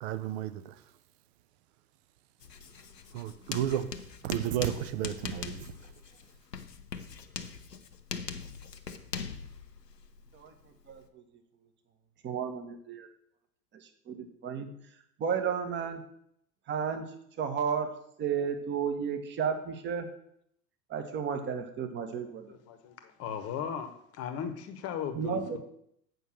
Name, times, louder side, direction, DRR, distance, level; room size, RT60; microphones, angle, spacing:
voice 1, 0.0-0.7 3.1-3.9 4.2-5.7, right 11 dB, 40° right, 0.7 m, -32 dB
Writing, 2.4-11.1, left 6 dB, 80° left, 0.9 m, -42 dB
voice 2, 10.9-11.2 12.2-13.1 14.1-14.7 15.2-16.0 16.7-17.1 17.4-17.9 18.2-20.1 20.9-22.5 25.1-25.6, right 7 dB, 25° right, 1.1 m, -32 dB
voice 3, 22.5-25.6, left 7 dB, 30° left, 1.1 m, -37 dB
7.9 x 5.5 x 6.4 m
figure-of-eight pair, 85°, 48 cm